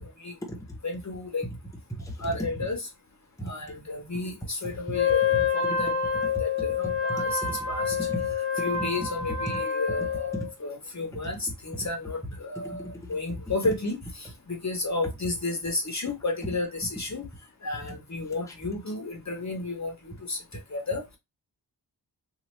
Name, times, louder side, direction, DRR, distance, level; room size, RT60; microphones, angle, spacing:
voice 1, 0.8-1.4 2.2-2.8 3.4-8.0 8.6-17.3 17.6-19.9 20.3-20.4 20.7-21.0, left 3 dB, 40° left, 0.8 m, -32 dB
voice 2, 1.9-2.4 3.4-3.5 4.6-4.7 5.6-5.8 7.1-8.3 8.7-8.9 9.5-9.6 10.0-10.1 10.3-10.5 12.6-13.4 18.5-18.6, equal, 5° left, 0.7 m, -37 dB
Wind instrument woodwind instrument, 4.9-10.5, left 6 dB, 75° left, 0.6 m, -27 dB
3.0 x 2.4 x 3.0 m
wide cardioid pair, 110°, 42 cm